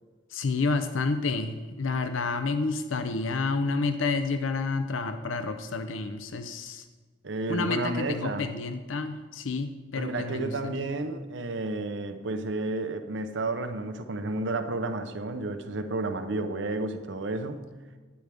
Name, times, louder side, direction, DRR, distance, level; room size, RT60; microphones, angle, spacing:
voice 1, 0.3-6.8 7.5-10.7, left 3 dB, 90° left, 9 dB, 0.6 m, -29 dB
voice 2, 7.2-8.4 10.0-17.7, right 2 dB, 70° right, 8 dB, 0.7 m, -31 dB
11.5 x 9.6 x 3.5 m, 1.4 s
head